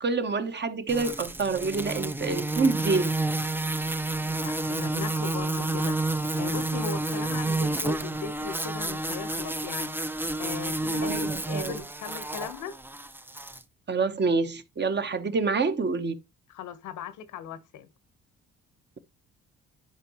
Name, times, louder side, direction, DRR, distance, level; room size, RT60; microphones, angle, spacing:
voice 1, 0.0-3.1 11.0-11.7 13.9-16.2, right 4 dB, 35° right, 1.0 m, -27 dB
sound 1, 0.9-13.6, right 2 dB, 5° right, 0.5 m, -30 dB
voice 2, 4.3-10.0 10.4-12.7 16.5-17.9, left 7 dB, 80° left, 1.2 m, -38 dB
11.0 x 4.5 x 3.1 m
cardioid pair, 90°, 30 cm